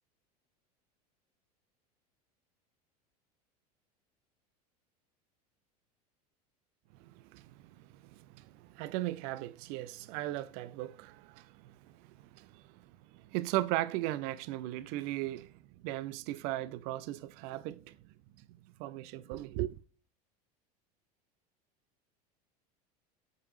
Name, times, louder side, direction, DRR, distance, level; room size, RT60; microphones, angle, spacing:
voice 1, 7.0-7.5 7.8-12.8 13.1-18.0 18.8-19.8, right 16 dB, 55° right, 0.6 m, -37 dB
8.2 x 5.1 x 3.2 m
hypercardioid pair, 80°, 20 cm